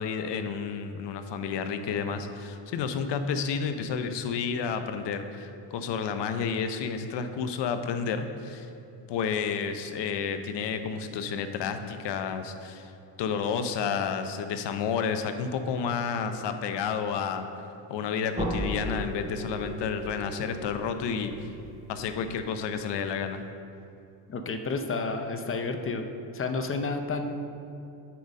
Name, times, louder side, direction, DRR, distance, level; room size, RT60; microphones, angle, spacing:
voice 1, 0.0-8.7 9.1-12.9 13.2-17.5 17.9-21.5 21.9-23.4, left 6 dB, 65° left, 8 dB, 0.7 m, -31 dB
sound 1, 18.3-23.2, right 1 dB, 15° right, 1.2 m, -37 dB
voice 2, 24.3-26.1 26.3-27.4, left 3 dB, 30° left, 6 dB, 0.6 m, -30 dB
8.3 x 4.1 x 5.2 m, 2.7 s
cardioid pair, 105°, 45 cm